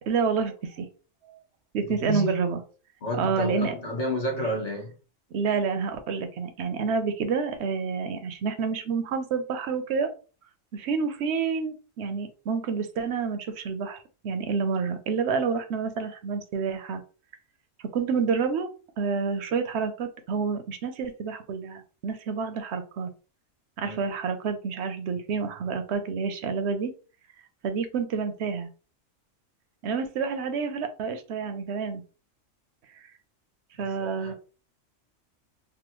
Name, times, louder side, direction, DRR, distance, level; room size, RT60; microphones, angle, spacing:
voice 1, 0.0-0.9 1.3-1.4 1.7-2.6 3.2-3.7 5.3-10.1 10.7-14.0 14.2-17.0 17.9-18.7 19.0-23.1 23.8-26.9 27.6-28.7 29.8-32.0 33.8-34.3, right 5 dB, 65° right, 0.8 m, -28 dB
voice 2, 1.8-2.4 3.0-4.9 23.8-24.1 34.0-34.3, equal, 40° left, 0.6 m, -30 dB
3.5 x 2.0 x 3.0 m
omnidirectional pair, 1.4 m